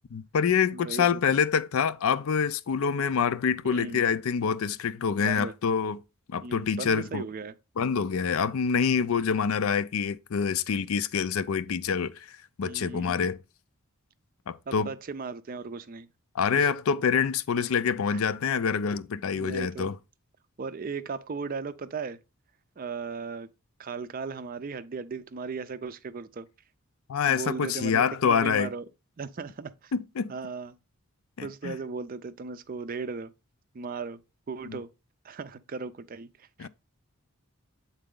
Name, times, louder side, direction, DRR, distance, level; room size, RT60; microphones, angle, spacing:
voice 1, 0.1-6.0 6.3-7.2 7.8-13.4 14.5-14.9 16.3-20.0 27.1-28.7 29.9-30.3 31.4-31.8 34.7-34.8 36.6-36.7, left 6 dB, 70° left, 0.4 m, -26 dB
voice 2, 0.7-1.2 3.6-4.1 5.2-5.5 6.4-7.5 12.6-13.2 14.7-16.1 16.5-16.7 18.1-18.2 19.4-19.9 20.6-22.2 22.8-23.5 23.8-26.5 27.3-28.9 29.2-29.9 30.3-30.7 31.4-33.3 33.7-34.2 34.5-34.9 35.2-36.7, right 4 dB, 40° right, 0.4 m, -37 dB
7.7 x 4.0 x 3.7 m
head